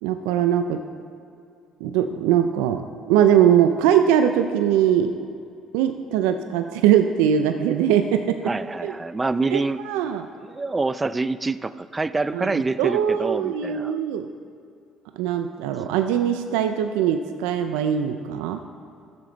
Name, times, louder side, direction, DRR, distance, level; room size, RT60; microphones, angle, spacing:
voice 1, 0.0-0.8 1.8-2.8 3.1-5.1 5.7-8.4 8.8-8.9 9.5-10.3 12.3-14.3 15.2-18.6, right 9 dB, 90° right, 7 dB, 0.4 m, -21 dB
voice 2, 8.5-9.8 10.4-13.9, right 3 dB, 20° right, 14 dB, 0.4 m, -26 dB
14.0 x 6.8 x 3.9 m, 2.4 s
supercardioid pair, 80°, 0 cm